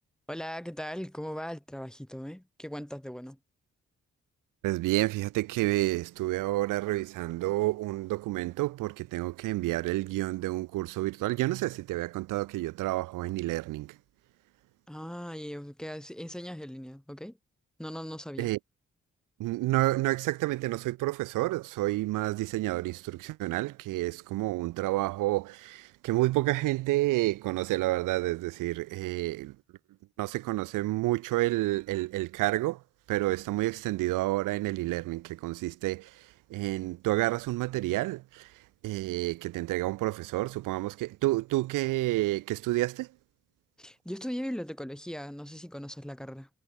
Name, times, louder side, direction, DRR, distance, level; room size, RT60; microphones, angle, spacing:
voice 1, 0.3-3.4 14.9-17.4 17.8-18.5 43.8-46.5, equal, ahead, 1.0 m, -39 dB
voice 2, 4.6-14.0 18.4-18.6 19.4-29.6 30.2-32.8 33.1-43.1, right 18 dB, 90° right, 0.5 m, -29 dB
supercardioid pair, 45°, 31 cm